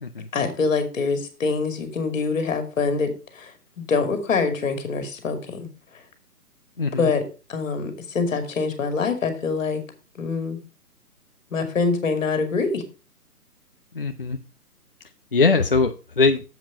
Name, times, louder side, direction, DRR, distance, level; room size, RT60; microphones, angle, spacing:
voice 1, 0.3-3.5 3.8-5.7 7.0-7.2 7.5-9.8 10.2-10.6 11.5-12.8, left 4 dB, 55° left, 8 dB, 2.5 m, -25 dB
voice 2, 6.8-7.1 14.0-14.4 15.3-16.4, left 4 dB, 40° left, 8 dB, 0.4 m, -21 dB
7.6 x 7.3 x 4.9 m, 0.32 s
figure-of-eight pair, 140°, 47 cm